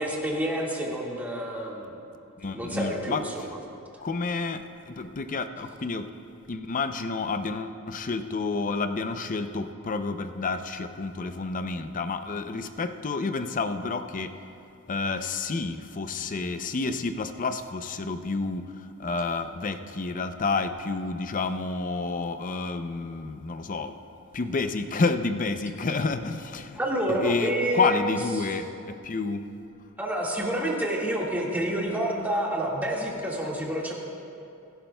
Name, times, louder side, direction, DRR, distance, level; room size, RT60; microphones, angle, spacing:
voice 1, 0.0-2.0 2.5-3.5 26.8-28.0 30.0-33.9, right 1 dB, 10° right, -3 dB, 1.8 m, -28 dB
voice 2, 2.4-3.5 4.0-6.1 6.5-14.4 14.9-24.0 24.3-26.8 27.1-29.5, left 4 dB, 40° left, 9 dB, 0.5 m, -30 dB
23.5 x 11.0 x 2.3 m, 2.6 s
head